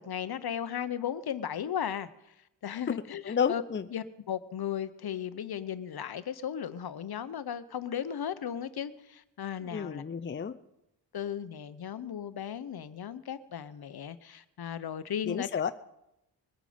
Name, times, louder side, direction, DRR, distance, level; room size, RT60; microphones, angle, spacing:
voice 1, 0.0-2.1 2.6-3.6 3.9-10.0 11.1-15.5, left 9 dB, 60° left, 13 dB, 0.9 m, -36 dB
voice 2, 3.2-3.9 9.6-10.6 15.3-15.7, left 7 dB, 30° left, 11 dB, 0.5 m, -31 dB
21.5 x 9.1 x 5.1 m, 0.85 s
wide cardioid pair, 100°, 43 cm